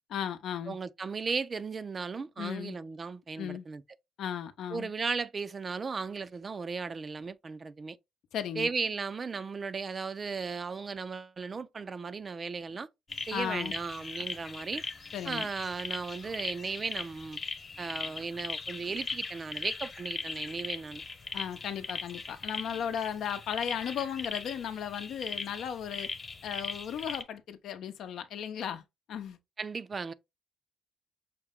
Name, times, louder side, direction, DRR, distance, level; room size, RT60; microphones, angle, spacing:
voice 1, 0.1-0.8 2.4-2.8 3.4-3.6 4.2-4.9 8.3-8.7 13.3-13.8 15.1-15.5 21.3-26.1 26.4-29.4, left 9 dB, 75° left, 0.6 m, -36 dB
voice 2, 0.7-3.8 4.7-8.0 8.6-12.9 13.3-14.8 15.3-17.4 17.8-21.0 29.6-30.1, right 4 dB, 35° right, 0.4 m, -36 dB
sound 1, 13.1-27.2, left 4 dB, 35° left, 1.1 m, -39 dB
5.9 x 2.1 x 3.6 m
cardioid pair, 90°, 0 cm